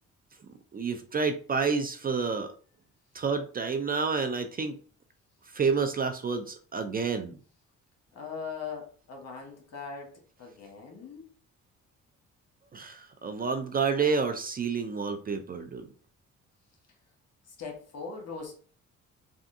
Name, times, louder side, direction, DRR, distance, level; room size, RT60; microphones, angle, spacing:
voice 1, 0.7-2.5 3.1-4.8 5.5-7.4 12.7-15.8, right 5 dB, 30° right, 7 dB, 0.4 m, -29 dB
voice 2, 8.1-11.3 17.5-18.6, left 5 dB, 55° left, 2 dB, 1.2 m, -40 dB
3.4 x 2.4 x 2.6 m, 0.40 s
cardioid pair, 90°, 30 cm